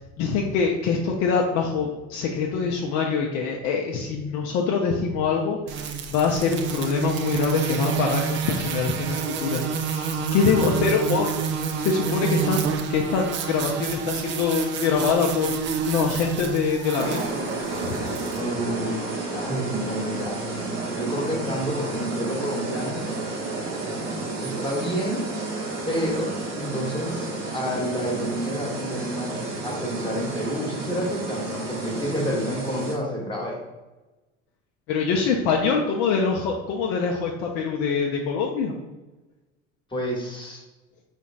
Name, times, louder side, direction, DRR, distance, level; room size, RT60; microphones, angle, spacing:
voice 1, 0.2-11.3 11.8-17.3 17.8-18.0 34.9-38.7, left 5 dB, 45° left, 0 dB, 0.6 m, -24 dB
sound 1, 5.7-18.4, right 7 dB, 30° right, 0.5 m, -28 dB
sound 2, 16.9-33.0, right 2 dB, 70° right, 1.0 m, -31 dB
voice 2, 18.3-19.0 19.3-20.4 20.9-23.0 23.7-24.1 24.4-25.2 25.9-29.3 29.6-33.6 39.9-40.6, equal, 15° left, -1 dB, 1.3 m, -29 dB
5.1 x 3.9 x 2.4 m, 1.1 s
figure-of-eight pair, 70°, 38 cm